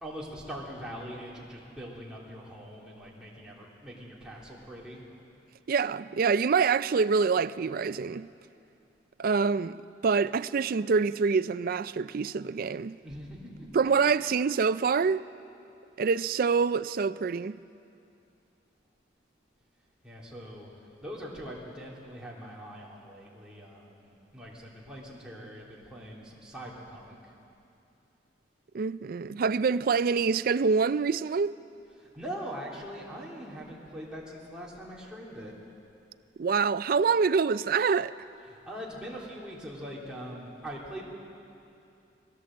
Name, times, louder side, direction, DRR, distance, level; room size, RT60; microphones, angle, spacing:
voice 1, 0.0-5.0 13.0-13.7 20.0-27.3 32.0-35.5 38.4-41.0, equal, 5° right, 3.2 m, -42 dB
voice 2, 5.7-8.3 9.2-9.8 10.0-13.0 13.7-15.3 16.0-17.6 28.7-31.5 36.4-38.1, right 5 dB, 50° right, 0.4 m, -26 dB
20.5 x 16.5 x 7.7 m
head